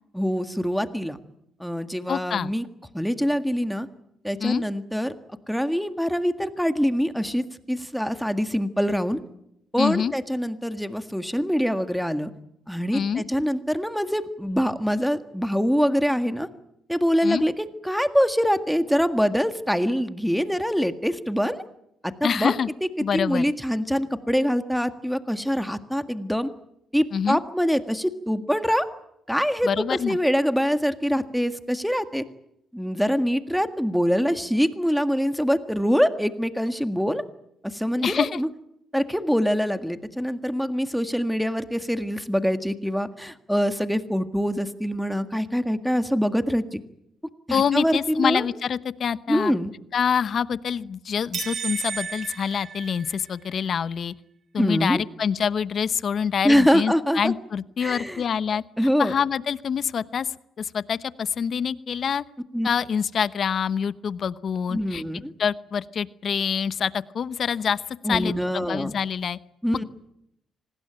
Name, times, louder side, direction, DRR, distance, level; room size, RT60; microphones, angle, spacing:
voice 1, 0.1-1.2 1.6-2.6 2.9-3.9 4.2-5.2 5.5-9.2 9.7-12.3 12.7-16.5 16.9-21.6 22.0-22.5 23.1-26.5 26.9-28.9 29.3-32.2 32.7-37.2 37.6-38.5 38.9-46.8 47.5-48.5 49.3-49.7 54.6-55.0 56.4-57.3 57.8-58.2 58.8-59.1 62.5-62.7 64.7-65.3 68.0-68.9 69.6-69.8, equal, ahead, 9 dB, 1.7 m, -24 dB
voice 2, 2.1-2.5 4.4-4.6 9.8-10.1 12.9-13.2 17.2-17.4 22.2-22.7 23.0-23.5 27.1-27.4 29.6-30.2 38.0-38.4 47.5-49.5 49.9-54.1 54.5-58.6 59.0-60.3 60.6-62.2 62.6-65.0 65.4-69.4, left 7 dB, 55° left, 15 dB, 0.9 m, -26 dB
sound 1, 51.3-53.5, right 6 dB, 55° right, 2.5 m, -33 dB
26.0 x 19.5 x 8.9 m, 0.79 s
cardioid pair, 90°, 0 cm